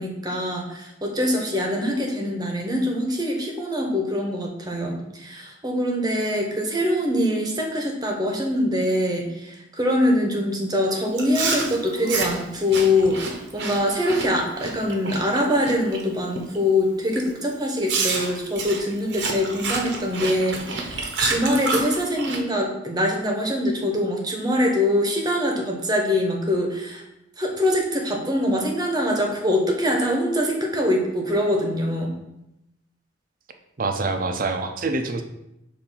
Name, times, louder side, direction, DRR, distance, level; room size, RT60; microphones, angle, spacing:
voice 1, 0.0-27.0 27.4-32.1, left 1 dB, 20° right, 1 dB, 1.0 m, -24 dB
Chewing mastication, 11.1-16.0 16.4-16.7 17.2-17.3 17.9-22.4, right 4 dB, 65° right, 0.9 m, -29 dB
voice 2, 33.8-35.2, right 3 dB, 50° right, 6 dB, 0.6 m, -25 dB
6.9 x 2.7 x 5.5 m, 0.86 s
head